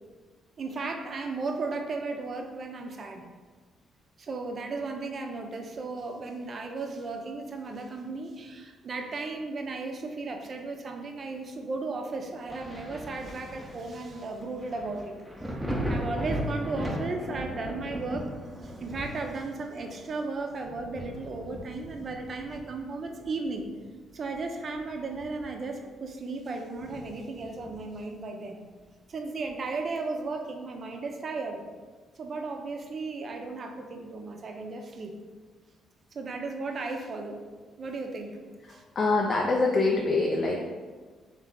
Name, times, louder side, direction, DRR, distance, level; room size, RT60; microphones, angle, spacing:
voice 1, 0.6-3.2 4.2-15.2 15.5-15.6 15.9-18.3 18.6-23.7 24.1-28.6 29.1-31.6 32.2-35.2 36.1-37.5 37.8-38.4 38.7-38.8, right 3 dB, 45° right, 4 dB, 0.5 m, -35 dB
Thunder, 12.5-23.8 24.2-25.8 26.1-26.2 26.8-28.1 29.5-29.6, equal, 10° right, 0.7 m, -38 dB
voice 2, 39.0-40.6, left 3 dB, 45° left, -1 dB, 0.4 m, -24 dB
3.4 x 3.1 x 3.7 m, 1.4 s
cardioid pair, 90°, 0 cm